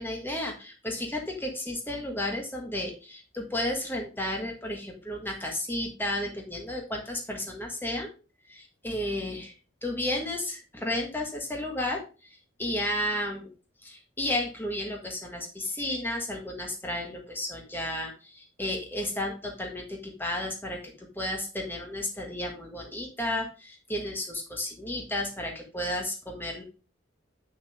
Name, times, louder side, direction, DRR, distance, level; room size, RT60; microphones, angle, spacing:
voice 1, 0.0-8.1 8.5-9.5 9.8-13.5 13.8-26.6, left 1 dB, 10° left, 1 dB, 1.6 m, -33 dB
8.0 x 6.4 x 3.6 m, 0.34 s
head